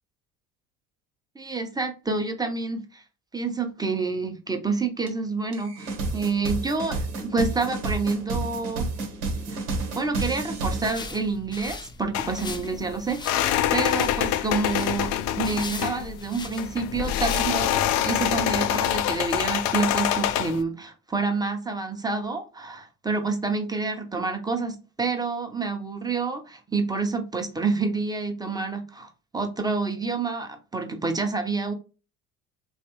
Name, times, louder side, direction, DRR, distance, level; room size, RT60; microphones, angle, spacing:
voice 1, 1.3-3.0 3.3-8.9 9.5-9.6 9.9-15.1 15.3-31.7, right 4 dB, 10° right, 0.8 m, -28 dB
sound 1, 5.1-5.2 5.5-10.9, right 3 dB, 85° right, 1.1 m, -30 dB
sound 2, 9.9-19.4, left 3 dB, 10° left, 0.3 m, -41 dB
sound 3, 12.1-20.6, left 11 dB, 60° left, 0.5 m, -26 dB
3.2 x 3.0 x 3.0 m
hypercardioid pair, 70°, 43 cm